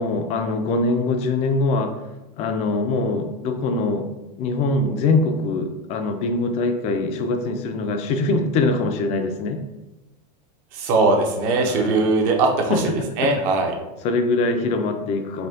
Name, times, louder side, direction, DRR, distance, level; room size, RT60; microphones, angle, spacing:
voice 1, 0.0-1.9 2.4-4.1 4.4-9.6 11.7-12.1 12.7-13.3 14.0-15.5, left 3 dB, 30° left, 6 dB, 0.4 m, -23 dB
voice 2, 10.7-12.7 13.2-13.7, right 3 dB, 50° right, 2 dB, 0.8 m, -20 dB
4.2 x 2.8 x 2.7 m, 1.0 s
supercardioid pair, 135°, 21 cm